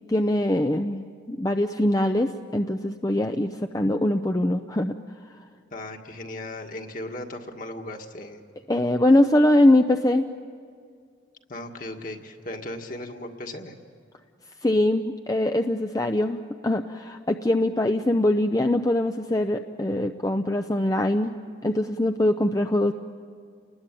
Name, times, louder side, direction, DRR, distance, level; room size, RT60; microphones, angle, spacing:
voice 1, 0.1-4.9 8.7-10.3 14.6-21.4 21.6-22.9, left 1 dB, 20° left, 6 dB, 0.6 m, -22 dB
voice 2, 5.7-8.4 11.5-13.8, left 1 dB, 45° left, 3 dB, 1.9 m, -37 dB
30.0 x 20.5 x 9.1 m, 2.2 s
head